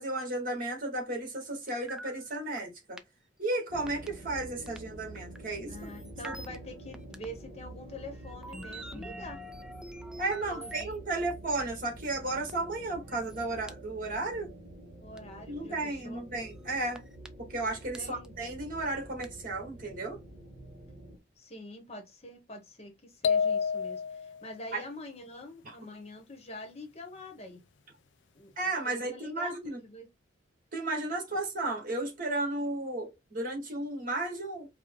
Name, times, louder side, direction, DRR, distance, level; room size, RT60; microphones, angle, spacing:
voice 1, 0.0-3.0 3.4-5.7 6.2-6.3 10.2-14.5 15.5-17.0 17.5-20.2 24.7-24.8 25.6-25.7 28.6-29.8 30.7-34.7, right 2 dB, 45° right, 1.7 m, -34 dB
sound 1, 1.7-2.3 2.6-2.7 3.0-3.1 3.9-4.1 4.7-4.8 5.2-5.4 5.7-6.6 6.9-7.3 7.9-11.0 11.3-11.4 11.6-11.7 12.0-12.1 12.5-12.6 13.0-13.7 15.2-15.3 16.1-16.2 17.0-17.3 17.9-18.0 18.2-18.3 19.2-19.3, right 1 dB, 5° right, 0.3 m, -45 dB
sound 2, 3.7-21.2, right 1 dB, 65° right, 1.4 m, -48 dB
voice 2, 5.7-9.4 10.5-11.2 15.0-16.2 17.9-18.3 21.4-27.6 28.3-28.5 28.8-29.5 29.8-30.1 31.3-31.4, left 1 dB, 35° left, 1.0 m, -45 dB
sound 3, 23.2-24.4, left 6 dB, 70° left, 0.4 m, -28 dB
4.8 x 2.2 x 3.5 m
head